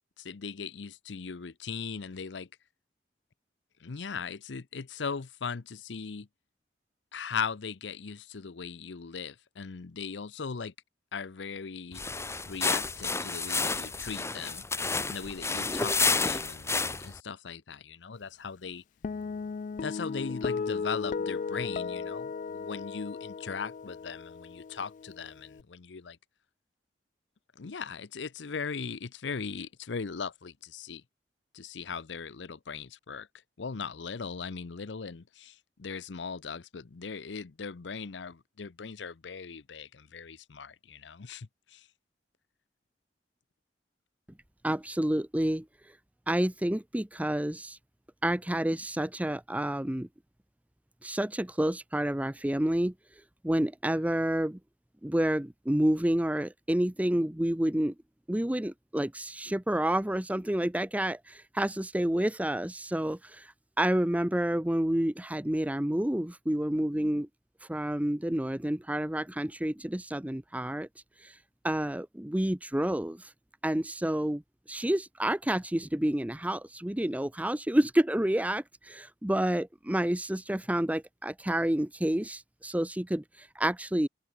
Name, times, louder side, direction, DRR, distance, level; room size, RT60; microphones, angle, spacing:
voice 1, 0.2-2.5 3.8-6.3 7.1-10.7 11.1-12.0 12.5-18.8 19.8-26.2 27.6-31.0 31.5-33.3 33.6-41.9, left 5 dB, 90° left, 0.7 m, -39 dB
sound 1, 11.9-17.2, left 4 dB, 15° left, 1.2 m, -30 dB
Guitar, 19.0-25.6, left 5 dB, 45° left, 0.3 m, -36 dB
voice 2, 44.6-45.6 46.3-47.8 48.2-50.1 51.0-52.9 53.4-54.6 55.0-57.9 58.3-67.3 67.7-70.9 71.2-71.4 71.6-73.3 73.6-74.4 74.7-84.1, right 1 dB, 10° right, 0.7 m, -29 dB
open air
head